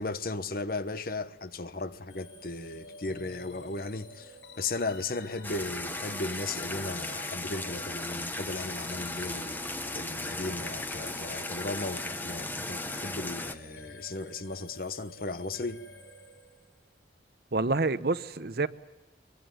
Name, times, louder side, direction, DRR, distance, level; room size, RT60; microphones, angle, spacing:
voice 1, 0.0-15.8, left 3 dB, 55° left, 1.1 m, -36 dB
sound 1, 2.1-16.8, left 2 dB, 80° left, 8.0 m, -50 dB
sound 2, 5.4-13.5, left 2 dB, 10° left, 1.1 m, -36 dB
voice 2, 17.5-18.7, right 3 dB, 55° right, 0.8 m, -27 dB
23.5 x 23.0 x 9.5 m
head